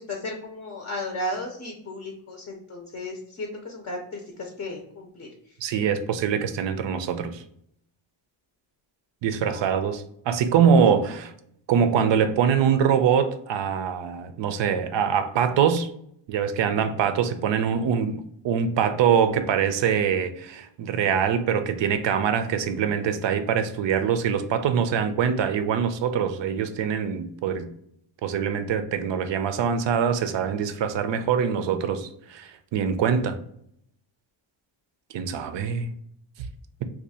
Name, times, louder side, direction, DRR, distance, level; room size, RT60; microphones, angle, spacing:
voice 1, 0.0-5.3 9.4-9.6, left 1 dB, 30° left, 2 dB, 0.6 m, -34 dB
voice 2, 5.6-7.4 9.2-11.3 11.7-15.9 16.3-27.7 28.2-33.4 35.1-35.9, right 7 dB, 65° right, 10 dB, 0.5 m, -24 dB
2.7 x 2.4 x 4.1 m, 0.71 s
wide cardioid pair, 130°, 48 cm